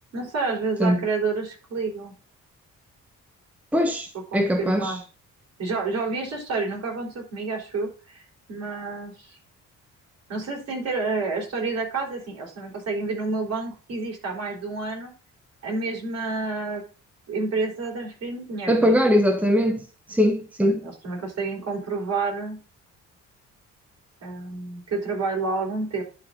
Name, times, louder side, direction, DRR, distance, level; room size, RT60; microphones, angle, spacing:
voice 1, 0.1-2.1 4.3-5.0 5.6-8.2 8.5-9.4 10.3-15.1 15.6-16.8 17.3-19.0 20.6-22.6 24.2-26.0, right 3 dB, 55° right, 4.4 m, -29 dB
voice 2, 3.7-5.0 18.7-20.8, equal, 5° right, 1.1 m, -21 dB
11.5 x 4.3 x 3.9 m
cardioid pair, 90°, 30 cm